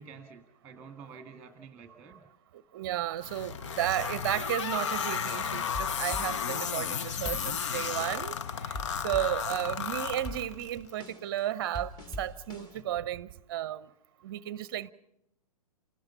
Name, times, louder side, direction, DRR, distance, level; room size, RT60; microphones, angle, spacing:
voice 1, 0.0-2.2, right 5 dB, 10° right, 1.5 m, -49 dB
voice 2, 2.7-8.4 8.6-8.8 9.0-11.9 12.2-13.9 14.2-14.9, right 12 dB, 35° right, 0.7 m, -33 dB
sound 1, 3.2-10.8, left 7 dB, 50° left, 0.7 m, -33 dB
sound 2, 5.0-6.9 7.2-8.4 8.7-9.9 10.2-12.8, left 1 dB, 20° left, 2.6 m, -43 dB
28.5 x 19.0 x 5.6 m
figure-of-eight pair, 120°, 20 cm